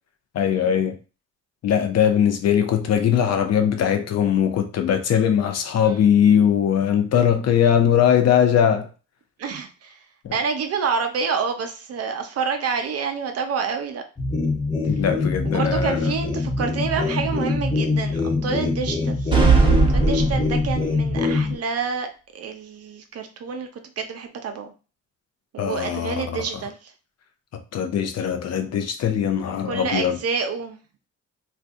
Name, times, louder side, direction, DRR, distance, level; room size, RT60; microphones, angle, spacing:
voice 1, 0.3-1.0 1.6-8.9 14.8-16.0 25.6-26.4 27.7-30.2, left 9 dB, 55° left, 0.6 m, -20 dB
voice 2, 9.4-10.0 10.3-14.0 15.5-19.4 19.9-22.1 22.3-24.7 25.5-26.9 29.5-30.8, right 5 dB, 55° right, 0.6 m, -28 dB
sound 1, 14.2-21.6, left 3 dB, 15° left, 0.5 m, -24 dB
sound 2, 19.3-21.0, right 4 dB, 15° right, 0.8 m, -18 dB
2.6 x 2.2 x 3.5 m
cardioid pair, 90°, 30 cm